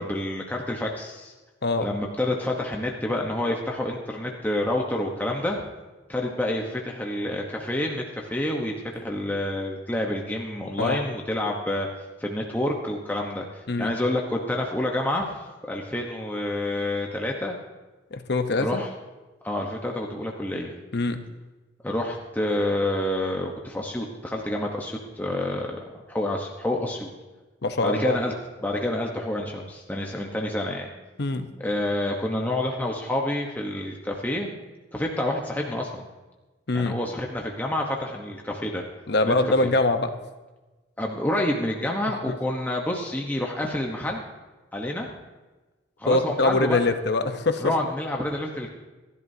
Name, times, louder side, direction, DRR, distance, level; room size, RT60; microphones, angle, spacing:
voice 1, 0.0-1.3 1.8-5.6 6.1-11.9 12.2-15.3 15.6-17.5 18.6-18.9 19.4-20.8 21.8-25.8 26.1-27.1 27.8-28.3 28.6-30.9 31.6-34.5 34.9-36.0 36.7-38.8 39.3-39.7 41.0-44.2 44.7-45.1 46.0-46.8 47.6-48.7, left 1 dB, 10° left, 0 dB, 1.1 m, -28 dB
voice 2, 18.1-18.8 20.9-21.2 27.6-28.2 31.2-31.5 36.7-37.0 39.1-40.1 42.3-42.4 46.1-47.7, left 2 dB, 60° left, 7 dB, 0.9 m, -23 dB
28.0 x 11.0 x 2.8 m, 1.2 s
head